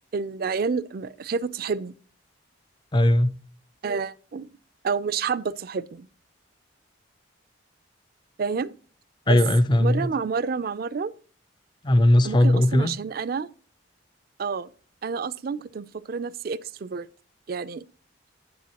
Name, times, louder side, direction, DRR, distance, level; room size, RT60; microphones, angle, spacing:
voice 1, 0.1-1.9 3.8-4.5 4.8-6.1 8.4-8.7 9.3-9.4 9.8-11.1 12.2-13.5 14.4-14.7 15.0-17.1 17.5-17.8, right 5 dB, 50° right, 0.4 m, -29 dB
voice 2, 2.9-3.4 9.3-10.1 11.8-12.9, left 1 dB, 25° left, 0.4 m, -19 dB
10.5 x 7.6 x 2.9 m
head